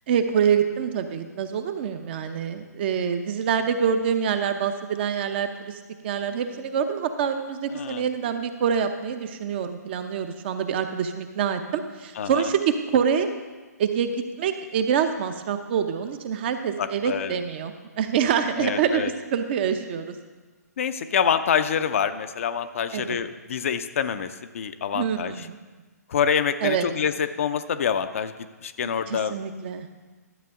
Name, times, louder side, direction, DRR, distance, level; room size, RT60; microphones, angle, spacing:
voice 1, 0.1-13.3 13.8-20.1 22.9-23.2 24.9-25.6 26.6-26.9 29.1-29.9, right 7 dB, 40° right, 8 dB, 0.7 m, -26 dB
voice 2, 7.7-8.1 12.1-12.5 16.8-17.4 18.6-19.1 20.8-25.5 26.1-28.3 28.6-29.3, left 7 dB, 50° left, 10 dB, 0.5 m, -26 dB
12.5 x 7.5 x 3.7 m, 1.3 s
figure-of-eight pair, 130°, 9 cm